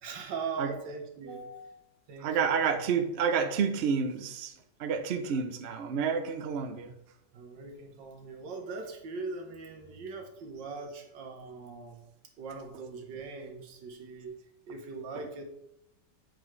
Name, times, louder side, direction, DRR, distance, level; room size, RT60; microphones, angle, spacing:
voice 1, 0.0-2.9 5.3-5.4 7.3-12.1 12.4-14.3 14.7-15.4, right 4 dB, 85° right, 3 dB, 1.7 m, -41 dB
voice 2, 2.2-4.5 4.8-6.9, right 6 dB, 60° right, 7 dB, 0.6 m, -29 dB
7.9 x 4.8 x 3.2 m, 0.80 s
omnidirectional pair, 1.9 m